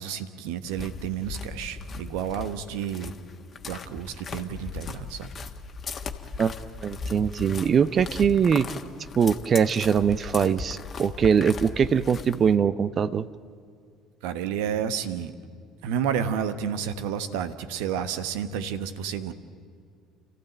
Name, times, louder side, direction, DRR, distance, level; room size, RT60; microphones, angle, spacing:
voice 1, 0.0-3.1 3.7-5.3 14.2-15.3 15.8-19.3, right 8 dB, 65° right, 12 dB, 1.2 m, -30 dB
sound 1, 0.7-12.6, left 5 dB, 35° left, 1.6 m, -38 dB
voice 2, 6.8-8.7 9.2-13.2, right 7 dB, 40° right, 16 dB, 0.7 m, -22 dB
29.5 x 15.0 x 9.1 m, 2.2 s
figure-of-eight pair, 55°, 0 cm